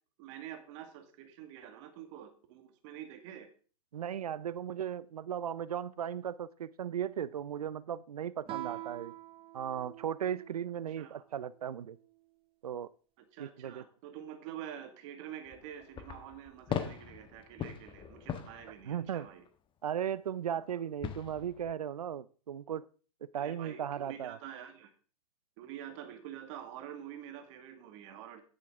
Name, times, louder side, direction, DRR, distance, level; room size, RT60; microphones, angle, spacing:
voice 1, 0.2-3.5 8.5-8.9 11.0-11.2 13.2-19.4 20.6-20.7 23.4-24.9 25.6-28.4, right 10 dB, 55° right, 1.9 m, -47 dB
voice 2, 3.9-9.1 9.5-12.0 12.6-12.9 13.4-13.8 18.9-19.3 19.8-22.8 23.2-24.4, right 9 dB, 90° right, 0.5 m, -36 dB
Guitar, 8.5-10.9, right 15 dB, 30° right, 0.6 m, -44 dB
sound 1, 15.5-19.5 21.0-21.7, left 8 dB, 25° left, 1.2 m, -41 dB
10.5 x 9.6 x 3.6 m
hypercardioid pair, 105°, 19 cm